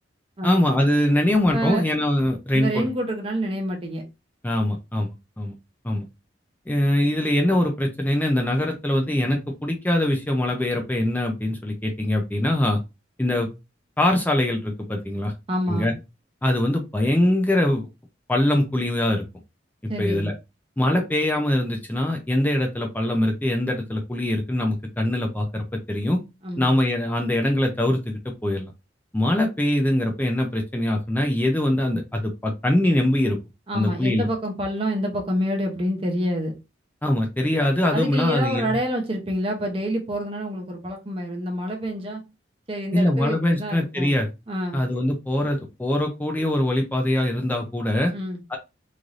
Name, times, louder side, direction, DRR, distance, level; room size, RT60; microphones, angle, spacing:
voice 1, 0.4-2.9 4.4-5.5 5.8-6.0 6.7-12.8 13.2-13.5 14.0-15.3 15.7-15.9 16.4-17.9 18.3-19.2 20.0-20.3 20.8-26.2 26.6-28.7 29.1-33.4 33.7-34.3 37.0-38.8 42.9-44.3 44.7-48.1 48.5-48.6, left 1 dB, 10° left, 2 dB, 0.4 m, -23 dB
voice 2, 1.5-1.8 2.5-4.0 15.5-15.9 19.9-20.3 26.4-26.7 33.7-36.5 37.9-42.2 42.7-44.1 44.5-44.8 48.1-48.4, equal, 30° right, 1 dB, 0.6 m, -27 dB
3.2 x 2.6 x 2.4 m, 0.25 s
head